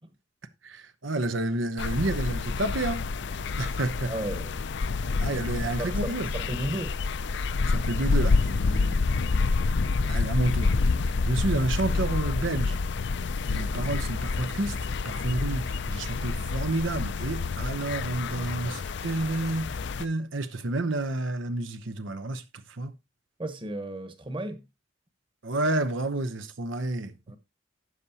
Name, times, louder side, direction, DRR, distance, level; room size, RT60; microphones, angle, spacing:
voice 1, 0.6-3.1 3.6-4.1 5.2-6.3 7.6-9.0 10.1-10.8 11.2-12.8 13.5-14.8 15.0-22.9 25.4-27.1, right 2 dB, 90° right, 1.0 m, -30 dB
sound 1, 1.8-20.0, left 4 dB, 65° left, 0.5 m, -28 dB
voice 2, 4.1-4.5 5.3-5.4 5.7-7.0 23.4-24.6 27.3-27.4, right 1 dB, 25° right, 1.2 m, -34 dB
12.5 x 8.3 x 2.9 m
head